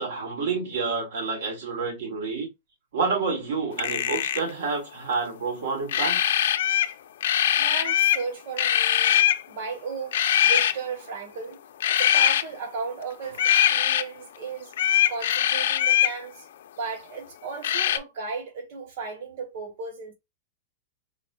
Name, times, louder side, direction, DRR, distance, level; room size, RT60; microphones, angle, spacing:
voice 1, 0.0-2.5 2.9-6.2, right 4 dB, 70° right, 1.9 m, -28 dB
sound 1, 3.7-4.5 5.9-6.9 7.2-8.2 8.6-9.4 10.1-10.7 11.8-12.4 13.3-14.0 14.7-16.1 17.6-18.0, left 11 dB, 75° left, 0.5 m, -22 dB
voice 2, 7.5-11.6 11.9-16.5 16.8-20.1, right 4 dB, 55° right, 2.1 m, -35 dB
4.9 x 2.3 x 3.3 m
supercardioid pair, 160°, 0 cm